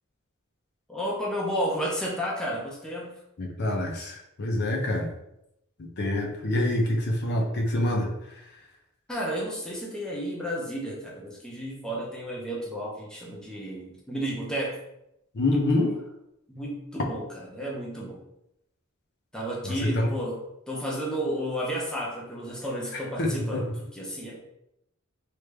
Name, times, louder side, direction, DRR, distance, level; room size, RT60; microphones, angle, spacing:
voice 1, 0.9-3.1 9.1-14.8 15.8-15.9 16.5-17.3 17.5-18.2 19.3-20.4 20.7-24.4, equal, 5° left, -4 dB, 0.7 m, -32 dB
voice 2, 3.4-5.1 6.0-8.1 15.3-15.9 19.6-20.1 22.9-23.6, left 1 dB, 55° left, 0 dB, 0.6 m, -26 dB
3.3 x 2.5 x 3.3 m, 0.82 s
head